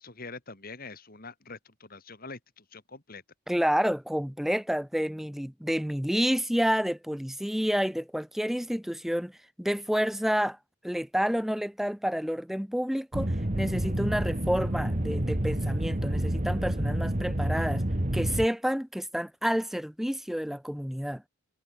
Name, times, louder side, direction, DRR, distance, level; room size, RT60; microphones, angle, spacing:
voice 1, 0.0-3.2, left 3 dB, 45° left, 3.0 m, -44 dB
voice 2, 3.5-10.6 10.8-17.8 18.1-21.2, equal, ahead, 0.6 m, -29 dB
sound 1, 13.1-18.5, right 1 dB, 35° right, 1.8 m, -29 dB
head